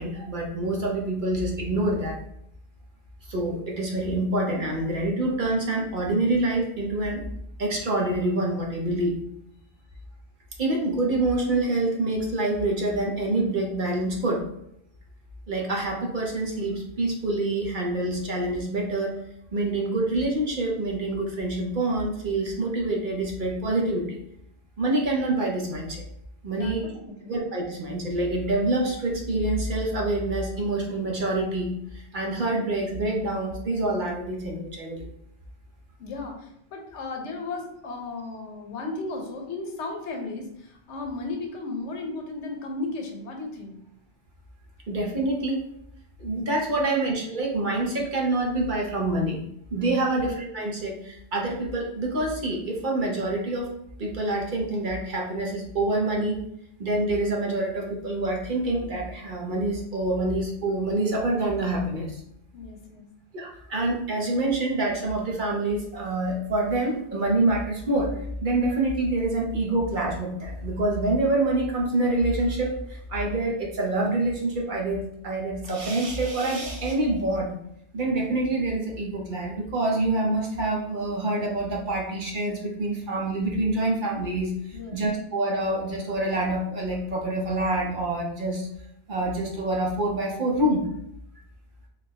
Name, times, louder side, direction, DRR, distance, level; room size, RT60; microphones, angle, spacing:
voice 1, 0.0-2.2 3.3-7.2 7.6-9.2 10.6-14.4 15.5-19.1 19.5-24.2 24.8-26.0 26.4-26.8 27.3-35.1 44.9-45.6 46.2-49.4 49.7-53.7 54.0-56.4 56.8-62.2 63.3-77.5 77.9-88.7 89.1-90.9, right 2 dB, 50° right, -1 dB, 0.8 m, -26 dB
voice 2, 26.5-27.4 36.0-43.8 46.8-47.0 50.0-50.2 62.5-63.1 84.7-85.0, left 3 dB, 85° left, 3 dB, 1.1 m, -35 dB
4.1 x 3.2 x 2.8 m, 0.75 s
omnidirectional pair, 1.2 m